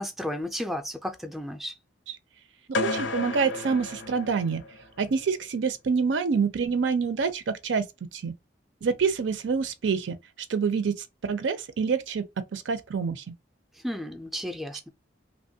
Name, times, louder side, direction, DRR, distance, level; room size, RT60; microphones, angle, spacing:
voice 1, 0.0-1.7 13.8-14.9, equal, ahead, 0.3 m, -33 dB
sound 1, 2.7-4.9, left 2 dB, 85° left, 0.5 m, -32 dB
voice 2, 2.7-4.6 5.0-7.9 8.1-8.3 8.8-10.2 10.5-11.0 11.2-12.2 12.5-13.2, right 5 dB, 80° right, 0.5 m, -26 dB
2.9 x 2.2 x 2.7 m
head